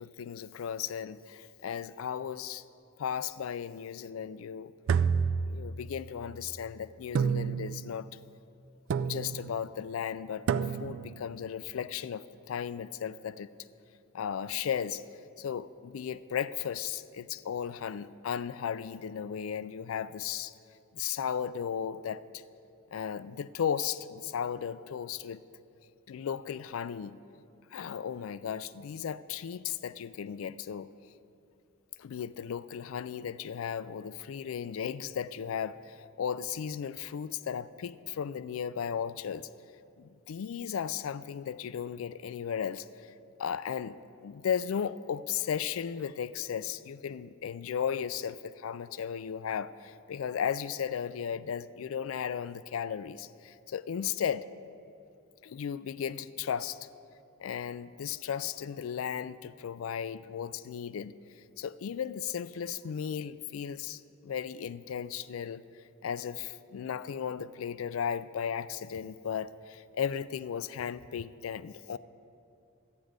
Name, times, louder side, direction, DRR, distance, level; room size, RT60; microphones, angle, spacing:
voice 1, 0.0-2.6 3.0-4.7 5.5-8.1 9.1-10.5 10.8-13.5 14.1-15.0 15.4-20.5 20.9-22.2 22.9-25.4 26.1-27.2 27.7-30.9 32.0-39.5 40.0-43.1 43.4-54.4 55.4-56.8 57.4-61.1 61.6-65.6 66.0-72.0, left 8 dB, 80° left, 16 dB, 0.4 m, -35 dB
sound 1, 4.9-6.1 7.1-7.9 8.9-9.5 10.5-11.1, right 6 dB, 65° right, 0.3 m, -29 dB
12.5 x 9.2 x 5.0 m, 2.5 s
head